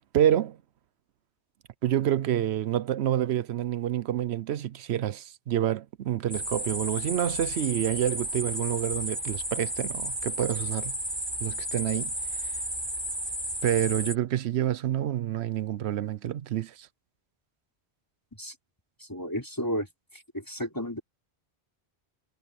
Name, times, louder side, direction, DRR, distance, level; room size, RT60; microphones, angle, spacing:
voice 1, 0.1-0.6 1.8-11.0 11.4-12.1 13.6-16.9, right 11 dB, 75° right, 0.9 m, -28 dB
sound 1, 6.3-14.2, equal, 25° right, 4.7 m, -33 dB
voice 2, 19.0-19.9 20.1-21.0, equal, 20° left, 3.8 m, -33 dB
omnidirectional pair, 1.1 m